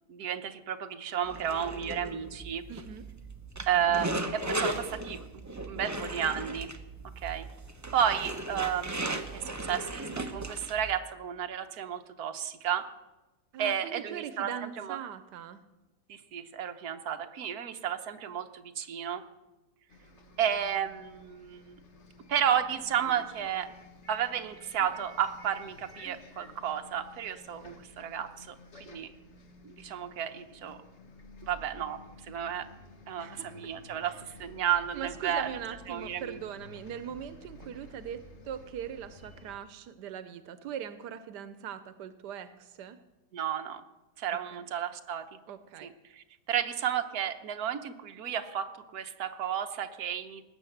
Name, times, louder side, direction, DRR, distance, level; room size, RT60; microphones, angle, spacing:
voice 1, 0.1-2.6 3.7-5.2 5.7-6.7 7.2-7.5 7.9-12.9 13.6-15.0 16.1-19.2 20.4-21.8 22.3-23.7 24.1-29.1 29.6-30.8 31.4-32.0 32.3-32.7 33.1-35.5 35.9-36.4 43.3-43.8 44.2-45.3 45.8-50.4, right 9 dB, 65° right, 7 dB, 1.5 m, -32 dB
sound 1, 1.2-11.0, right 1 dB, 15° right, 0.7 m, -37 dB
voice 2, 2.7-3.1 13.5-15.6 33.2-33.5 34.0-34.2 34.9-43.0 44.5-44.6 45.5-45.9, right 9 dB, 90° right, 12 dB, 1.4 m, -41 dB
Bus, 19.9-39.6, left 2 dB, 45° left, 1.6 m, -52 dB
19.5 x 9.0 x 7.9 m, 1.1 s
omnidirectional pair, 1.8 m